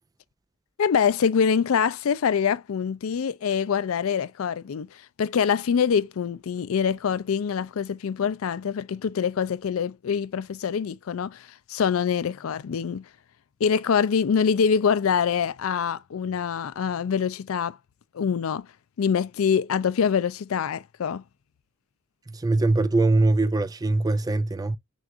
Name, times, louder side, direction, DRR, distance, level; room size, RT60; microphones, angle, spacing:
voice 1, 0.8-13.0 13.6-17.8 18.1-18.7 19.0-21.2, left 7 dB, 85° left, 0.4 m, -25 dB
voice 2, 22.4-24.8, right 2 dB, 20° right, 0.4 m, -22 dB
6.3 x 2.4 x 2.6 m
head